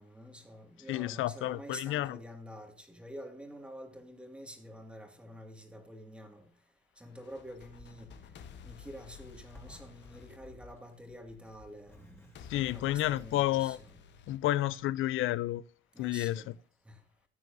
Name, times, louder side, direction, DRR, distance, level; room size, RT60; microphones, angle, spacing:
voice 1, 0.0-6.5 7.0-8.1 8.6-12.3 12.5-14.0 15.9-16.5 16.9-17.0, equal, 5° right, 2.0 m, -48 dB
voice 2, 0.9-2.2 12.5-13.8 14.3-15.6 16.0-16.4, left 15 dB, 85° left, 0.5 m, -30 dB
sound 1, 7.1-11.2 12.4-15.2, left 9 dB, 65° left, 1.0 m, -53 dB
Zipper (clothing), 7.4-14.6, equal, 10° left, 2.8 m, -58 dB
15.5 x 9.4 x 2.7 m
cardioid pair, 135°, 20 cm